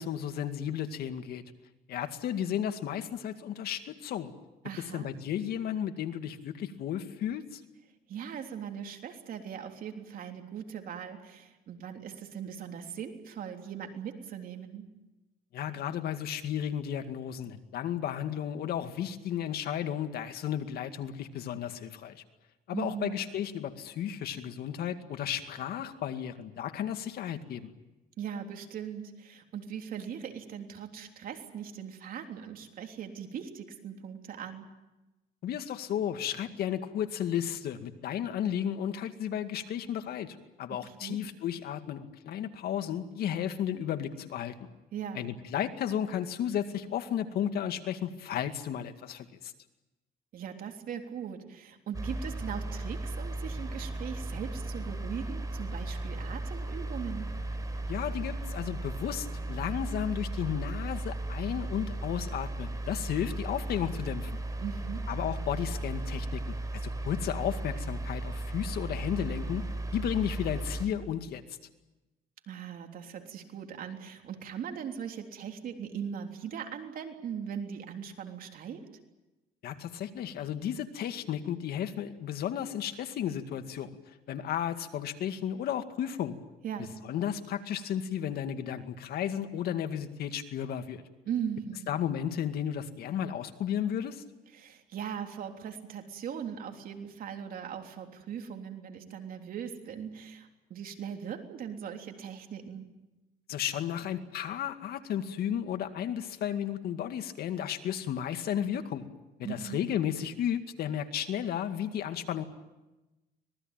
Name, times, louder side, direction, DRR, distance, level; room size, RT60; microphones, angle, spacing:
voice 1, 0.0-1.4 1.9-4.3 4.8-7.6 15.5-22.2 22.7-27.7 35.4-44.5 45.1-49.5 57.9-64.4 65.1-69.7 69.9-71.4 79.6-83.9 84.3-86.4 87.0-91.0 91.9-94.2 103.5-109.1 109.4-112.4, left 9 dB, 65° left, 8 dB, 2.2 m, -33 dB
voice 2, 4.6-5.1 8.1-14.9 22.7-23.2 28.2-34.7 40.8-41.2 44.9-45.3 50.3-57.3 64.6-65.0 72.5-78.8 86.6-86.9 91.3-91.9 94.5-102.9 109.4-109.8, right 8 dB, 60° right, 4 dB, 3.5 m, -39 dB
sound 1, 51.9-70.9, right 2 dB, 20° right, 5.1 m, -36 dB
25.5 x 19.5 x 9.1 m, 1.0 s
cardioid pair, 110°, 17 cm